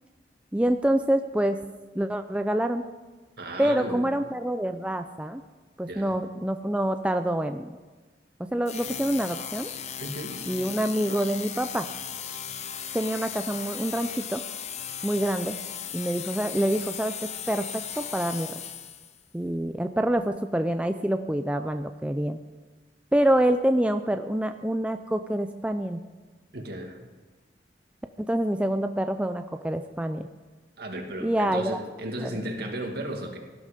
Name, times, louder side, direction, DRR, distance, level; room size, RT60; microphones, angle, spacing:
voice 1, 0.5-1.6 1.9-2.8 3.6-5.4 5.8-7.7 8.5-9.7 10.5-11.9 12.9-14.4 15.0-15.6 15.9-17.1 17.5-18.6 19.3-22.4 23.1-26.0 28.2-30.3 31.2-31.8 32.2-32.3, right 1 dB, 5° right, 7 dB, 0.4 m, -26 dB
voice 2, 3.4-4.0 5.9-6.1 10.0-10.4 26.5-27.0 30.8-33.4, right 1 dB, 60° right, 3 dB, 2.2 m, -34 dB
sound 1, 8.6-19.2, left 8 dB, 40° left, 0.8 m, -37 dB
17.5 x 12.0 x 5.2 m, 1.3 s
head